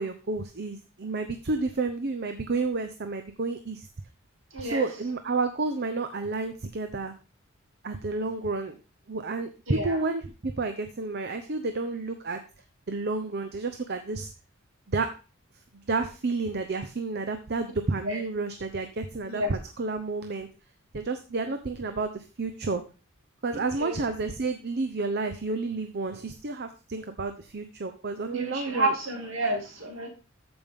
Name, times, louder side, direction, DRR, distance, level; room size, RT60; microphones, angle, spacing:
voice 1, 0.0-3.9 4.6-7.1 7.8-8.8 9.1-12.4 12.9-14.3 14.9-15.1 15.9-20.5 20.9-22.8 23.4-28.9, right 3 dB, 50° right, 7 dB, 0.8 m, -30 dB
voice 2, 4.5-4.9 9.7-10.0 18.0-18.2 19.3-19.5 23.7-24.0 28.3-30.1, right 1 dB, 65° right, 2 dB, 2.7 m, -30 dB
14.0 x 5.4 x 3.6 m, 0.33 s
head